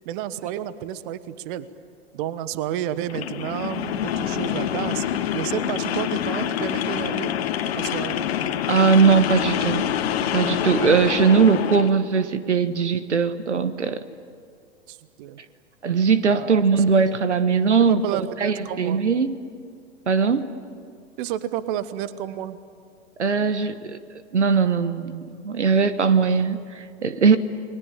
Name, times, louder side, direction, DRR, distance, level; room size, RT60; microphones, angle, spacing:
voice 1, 0.0-1.7 2.1-7.3 7.7-8.3 14.9-15.4 16.2-16.8 17.8-19.0 21.2-22.6, right 11 dB, 45° right, 14 dB, 1.2 m, -31 dB
sound 1, 3.1-11.9, left 10 dB, 60° left, 1.6 m, -26 dB
voice 2, 8.7-9.8 10.2-14.0 15.8-19.4 20.1-20.5 23.2-27.4, right 5 dB, 80° right, 13 dB, 1.3 m, -20 dB
29.5 x 21.5 x 8.5 m, 2.2 s
figure-of-eight pair, 100°, 34 cm